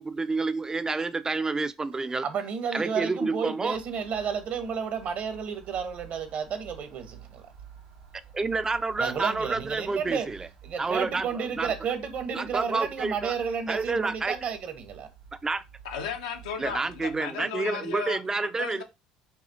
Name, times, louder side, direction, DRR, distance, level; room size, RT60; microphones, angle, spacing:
voice 1, 0.0-2.3 2.7-3.8 8.3-10.5 10.8-11.7 12.3-13.4 13.7-14.4 15.4-15.6 16.6-18.8, right 3 dB, 20° right, 0.4 m, -29 dB
voice 2, 2.2-7.4 9.0-10.3 10.6-15.1, right 6 dB, 55° right, 1.0 m, -32 dB
sound 1, 3.7-17.2, right 8 dB, 85° right, 1.2 m, -51 dB
voice 3, 15.8-18.2 18.6-18.8, left 7 dB, 85° left, 0.8 m, -35 dB
5.8 x 2.4 x 2.8 m
hypercardioid pair, 75°, 3 cm